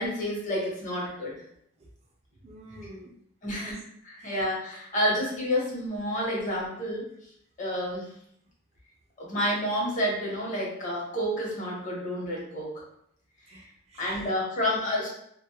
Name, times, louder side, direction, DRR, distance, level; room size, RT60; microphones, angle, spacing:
voice 1, 0.0-1.4 3.4-3.7 4.0-7.0 7.6-8.1 9.2-12.7 14.0-15.1, equal, 40° left, -4 dB, 0.8 m, -29 dB
voice 2, 2.4-3.2 3.5-3.8 4.2-4.4 13.4-14.3, right 1 dB, 35° right, -2 dB, 0.4 m, -48 dB
2.2 x 2.1 x 2.7 m, 0.72 s
head